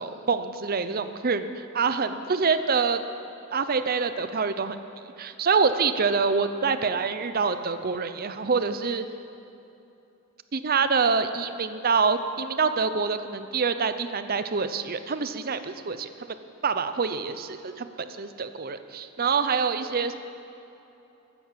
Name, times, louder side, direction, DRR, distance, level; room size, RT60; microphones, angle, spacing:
voice 1, 0.0-3.0 3.5-4.8 5.2-9.0 10.5-16.4 16.6-17.9 18.2-20.2, right 5 dB, 45° right, 10 dB, 0.7 m, -26 dB
14.5 x 11.0 x 7.5 m, 2.9 s
head